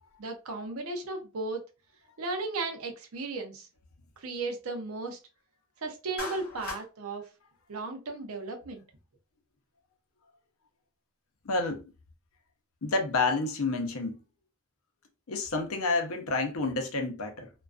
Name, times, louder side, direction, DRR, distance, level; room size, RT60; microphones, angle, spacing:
voice 1, 0.2-1.6 2.2-3.7 4.2-5.2 5.8-7.3 7.7-8.8, right 3 dB, 80° right, 0.6 m, -35 dB
Clapping, 6.2-6.9, left 3 dB, 40° left, 0.8 m, -37 dB
voice 2, 11.4-11.9 12.8-14.2 15.3-17.5, left 3 dB, 75° left, 0.6 m, -29 dB
2.4 x 2.2 x 2.4 m
head